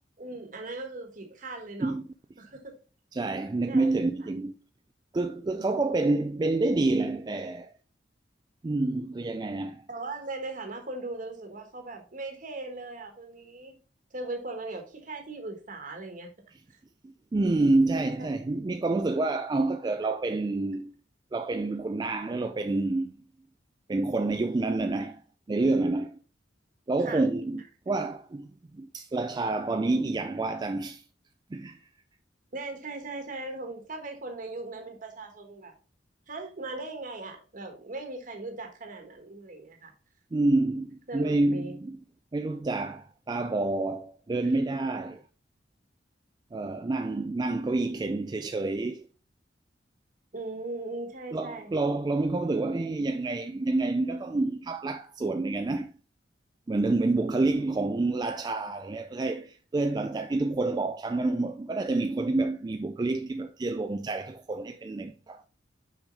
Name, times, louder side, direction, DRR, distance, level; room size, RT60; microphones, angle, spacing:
voice 1, 0.2-2.0 2.4-2.8 3.7-3.9 5.5-5.8 9.9-13.7 14.1-16.3 16.7-16.8 18.2-18.3 27.0-27.3 32.5-35.7 36.3-39.9 41.1-41.7 50.3-51.7, right 2 dB, 45° right, 1.3 m, -39 dB
voice 2, 3.1-4.5 5.1-7.7 8.6-9.8 17.0-20.9 21.3-23.2 23.9-25.2 25.5-26.2 26.9-31.0 31.5-31.8 40.3-42.0 42.3-45.2 46.5-49.1 51.3-55.9 56.7-65.4, right 2 dB, 20° right, 0.3 m, -28 dB
6.1 x 5.0 x 3.8 m
head